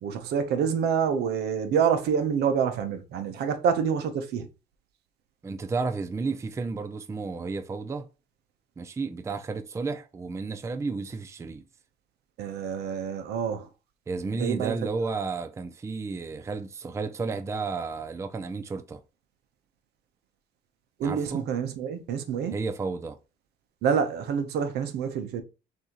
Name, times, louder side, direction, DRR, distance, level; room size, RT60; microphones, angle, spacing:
voice 1, 0.0-4.5 12.4-13.7 14.3-14.7 21.0-22.5 23.8-25.4, right 7 dB, 75° right, 0.8 m, -27 dB
voice 2, 5.4-8.1 8.8-11.6 14.1-19.0 21.0-21.5 22.5-23.2, right 4 dB, 15° right, 0.4 m, -32 dB
6.2 x 2.7 x 2.9 m
cardioid pair, 110°, 17 cm